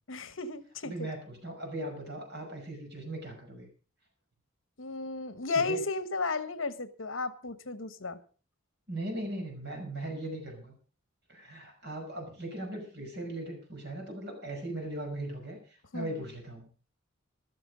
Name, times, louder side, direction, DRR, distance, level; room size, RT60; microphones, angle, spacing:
voice 1, 0.1-1.1 4.8-8.2 15.9-16.1, left 3 dB, 65° left, 1.3 m, -34 dB
voice 2, 0.8-3.7 5.5-5.8 8.9-10.7 11.3-16.7, right 1 dB, 55° right, 5.5 m, -39 dB
14.0 x 13.0 x 5.1 m
head